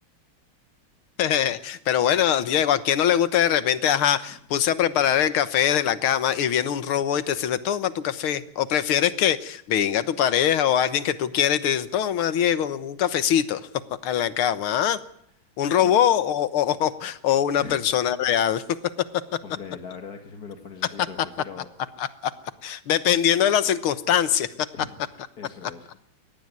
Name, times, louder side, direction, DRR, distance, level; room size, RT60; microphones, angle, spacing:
voice 1, 1.2-13.7 14.0-15.0 15.6-18.9 19.3-19.4 22.0-22.3 22.6-24.5, left 10 dB, 85° left, 14 dB, 2.0 m, -22 dB
voice 2, 19.4-21.7 24.7-25.0 25.4-25.9, left 5 dB, 50° left, 5 dB, 2.2 m, -40 dB
22.0 x 18.5 x 9.5 m, 0.71 s
omnidirectional pair, 2.3 m